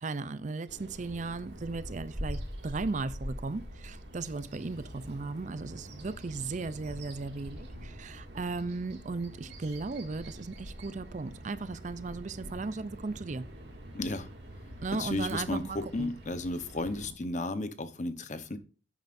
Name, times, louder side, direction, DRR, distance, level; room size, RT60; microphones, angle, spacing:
voice 1, 0.0-13.4 14.8-16.1, right 3 dB, 40° right, 0.5 m, -36 dB
Bird vocalization bird call bird song, 0.7-17.1, equal, 65° right, 2.2 m, -44 dB
voice 2, 13.9-14.3 14.9-18.6, left 2 dB, 40° left, 0.9 m, -34 dB
11.0 x 9.1 x 2.6 m
head